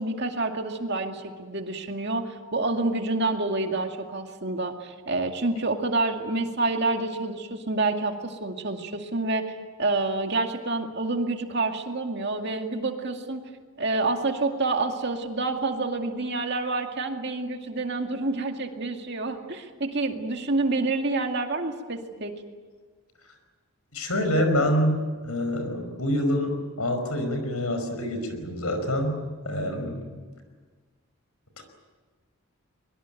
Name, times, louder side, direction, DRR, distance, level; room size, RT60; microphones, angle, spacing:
voice 1, 0.0-13.4 13.8-22.3, right 2 dB, 50° right, 4 dB, 2.2 m, -28 dB
voice 2, 23.9-29.2 29.5-30.1 31.6-31.7, equal, 85° left, 7 dB, 5.3 m, -26 dB
23.0 x 23.0 x 9.1 m, 1.4 s
head